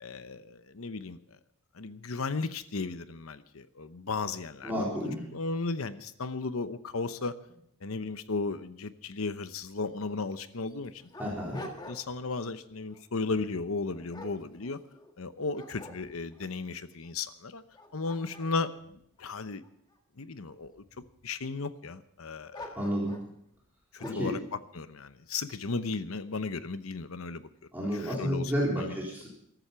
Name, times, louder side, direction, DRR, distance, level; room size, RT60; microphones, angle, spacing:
voice 1, 0.0-1.2 1.7-7.4 7.8-11.0 11.6-14.8 15.2-17.6 17.9-19.6 20.2-22.8 23.9-27.5 27.8-29.0, left 3 dB, 80° left, 12 dB, 0.9 m, -35 dB
voice 2, 4.6-5.2 11.2-11.6 22.7-23.2 24.0-24.3 27.7-29.3, equal, 10° right, -5 dB, 3.8 m, -31 dB
Dog, 10.0-10.1 10.7-12.3 12.7-13.0 13.6-15.1 15.5-16.5 17.0-17.1 17.6-19.9 20.6-21.2 22.5-23.3 24.0-24.4, left 1 dB, 20° left, 1.6 m, -47 dB
14.5 x 13.0 x 5.8 m, 0.74 s
head